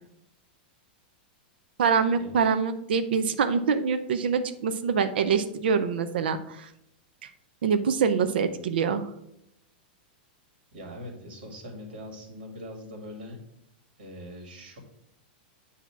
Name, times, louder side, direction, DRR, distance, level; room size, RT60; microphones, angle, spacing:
voice 1, 1.8-6.7 7.6-9.0, right 6 dB, 85° right, 9 dB, 0.5 m, -25 dB
voice 2, 10.7-13.4 14.0-14.8, equal, 65° right, 2 dB, 2.0 m, -42 dB
8.2 x 2.8 x 5.7 m, 0.79 s
supercardioid pair, 170°, 5 cm